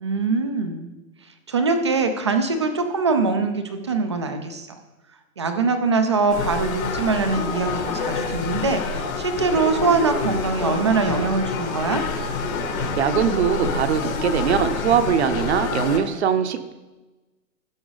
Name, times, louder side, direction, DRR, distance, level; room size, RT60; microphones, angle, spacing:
voice 1, 0.0-0.9 1.5-4.8 5.4-12.0, right 4 dB, 20° right, 7 dB, 0.4 m, -23 dB
sound 1, 6.3-16.0, left 4 dB, 75° left, 2.5 m, -27 dB
voice 2, 13.0-16.7, right 7 dB, 50° right, 10 dB, 1.0 m, -21 dB
16.0 x 5.9 x 4.0 m, 1.1 s
hypercardioid pair, 165°, 41 cm